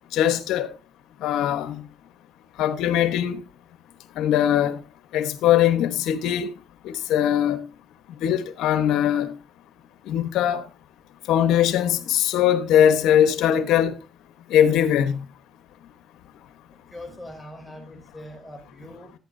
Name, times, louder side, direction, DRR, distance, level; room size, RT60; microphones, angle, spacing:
voice 1, 0.1-0.7 1.2-1.8 2.6-3.4 4.2-4.8 5.1-6.5 6.8-7.6 8.2-9.3 10.0-10.6 11.3-14.0 14.5-15.2, left 10 dB, 90° left, 1.1 m, -21 dB
voice 2, 16.7-19.1, left 1 dB, 10° left, 5.7 m, -42 dB
16.5 x 9.3 x 2.6 m
cardioid pair, 90°, 0 cm